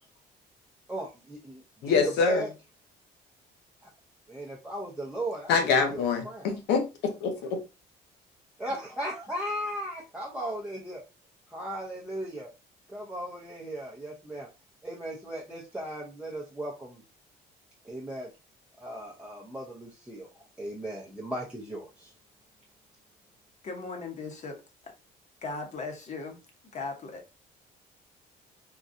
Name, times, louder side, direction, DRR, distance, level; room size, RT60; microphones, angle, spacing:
voice 1, 0.9-2.5 3.8-3.9 4.3-6.6 8.6-11.0 11.5-12.5 12.9-14.5 14.8-17.0 17.8-18.3 18.8-22.1, right 1 dB, 5° right, 0.6 m, -37 dB
voice 2, 1.8-2.4 5.5-7.6, left 5 dB, 85° left, 0.9 m, -25 dB
voice 3, 23.6-24.9 25.4-26.4 26.7-27.5, left 3 dB, 45° left, 0.9 m, -38 dB
3.8 x 2.2 x 2.5 m
cardioid pair, 110°, 17 cm